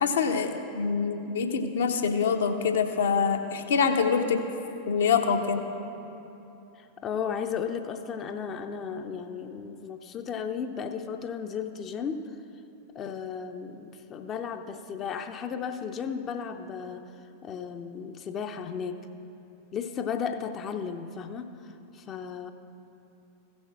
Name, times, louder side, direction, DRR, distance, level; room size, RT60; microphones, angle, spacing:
voice 1, 0.0-4.4 4.9-5.6, left 6 dB, 65° left, 5 dB, 0.9 m, -25 dB
voice 2, 6.8-12.2 12.9-17.0 17.4-19.0 19.7-22.5, left 7 dB, 30° left, 7 dB, 0.6 m, -34 dB
15.0 x 6.3 x 6.2 m, 2.9 s
figure-of-eight pair, 90°, 0 cm